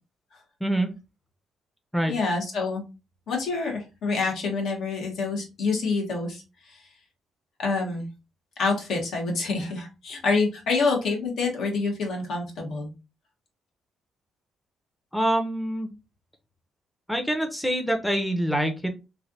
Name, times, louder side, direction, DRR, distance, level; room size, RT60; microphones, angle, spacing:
voice 1, 0.6-0.9 1.9-2.1 15.1-15.9 17.1-19.0, right 1 dB, ahead, 4 dB, 0.6 m, -25 dB
voice 2, 2.1-2.8 3.3-6.8 7.6-8.1 8.6-12.9, left 4 dB, 70° left, 0 dB, 1.3 m, -27 dB
3.2 x 2.5 x 2.6 m, 0.28 s
cardioid pair, 90°, 0 cm